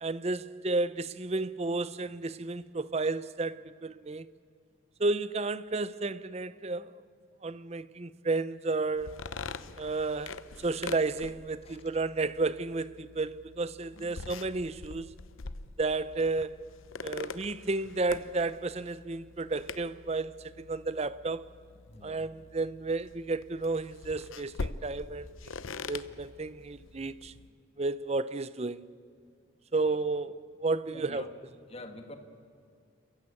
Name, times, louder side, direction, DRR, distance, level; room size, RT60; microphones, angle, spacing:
voice 1, 0.0-4.3 5.0-7.0 7.4-9.1 9.8-15.1 15.8-16.7 17.0-21.5 22.0-25.3 25.9-27.3 27.8-28.9 29.7-30.4 30.6-31.3, right 3 dB, 30° right, 0.5 m, -32 dB
sound 1, 9.0-27.5, left 4 dB, 75° left, 0.8 m, -44 dB
voice 2, 13.9-14.3 21.9-22.3 27.5-27.6 29.8-30.0 30.9-31.3 31.7-32.2, left 1 dB, 30° left, 1.7 m, -47 dB
28.5 x 15.0 x 8.6 m
head